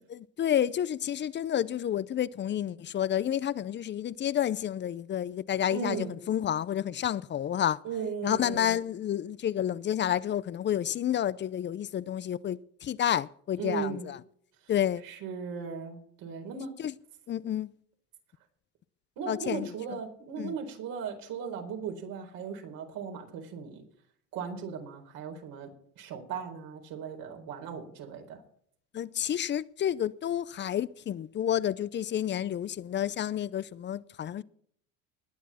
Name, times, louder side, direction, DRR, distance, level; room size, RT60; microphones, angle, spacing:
voice 1, 0.1-7.8 8.2-14.2 14.7-15.0 16.8-16.9 17.3-17.7 19.3-19.7 20.4-20.5 28.9-34.4, left 10 dB, 30° left, 0.5 m, -30 dB
voice 2, 5.7-6.2 7.8-8.8 13.6-14.1 15.0-16.7 19.2-23.8 24.3-25.7 26.0-28.4, right 6 dB, 70° right, 4.2 m, -37 dB
20.0 x 8.3 x 4.2 m
cardioid pair, 110°, 36 cm